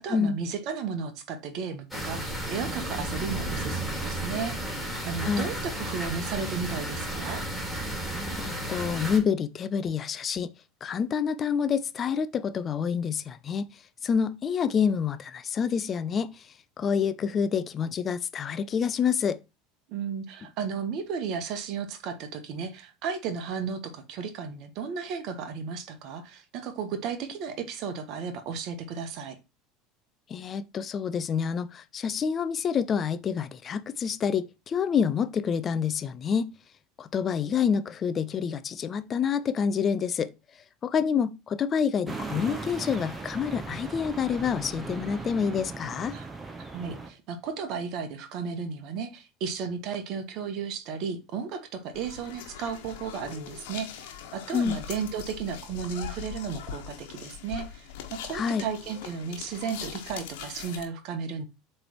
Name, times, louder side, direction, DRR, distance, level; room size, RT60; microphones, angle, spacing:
voice 1, 0.0-7.4 19.9-29.4 46.1-46.3 46.7-61.5, right 6 dB, 50° right, 1.3 m, -34 dB
sound 1, 1.9-9.2, right 1 dB, ahead, 2.9 m, -33 dB
voice 2, 8.4-10.5 10.8-19.4 30.3-36.5 37.0-40.3 40.8-46.1 54.5-54.8 58.3-58.7, left 7 dB, 35° left, 0.5 m, -28 dB
sound 2, 42.1-47.1, right 3 dB, 15° right, 1.1 m, -38 dB
sound 3, 51.9-60.8, left 8 dB, 60° left, 1.3 m, -41 dB
7.6 x 3.3 x 4.4 m
figure-of-eight pair, 70°, 0 cm